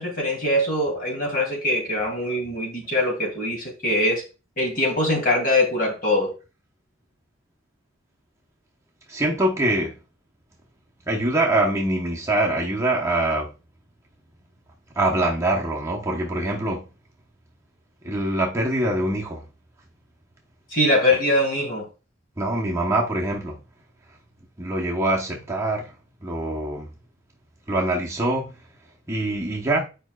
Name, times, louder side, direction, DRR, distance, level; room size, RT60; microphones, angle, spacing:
voice 1, 0.0-4.2 4.6-6.3 20.7-21.9, left 1 dB, 45° left, 2.7 m, -22 dB
voice 2, 9.1-9.9 11.1-13.5 14.9-16.8 18.0-19.5 22.4-23.6 24.6-25.9 26.2-26.9 27.7-28.5 29.1-29.8, right 1 dB, 15° right, 0.9 m, -24 dB
8.6 x 5.1 x 2.3 m
head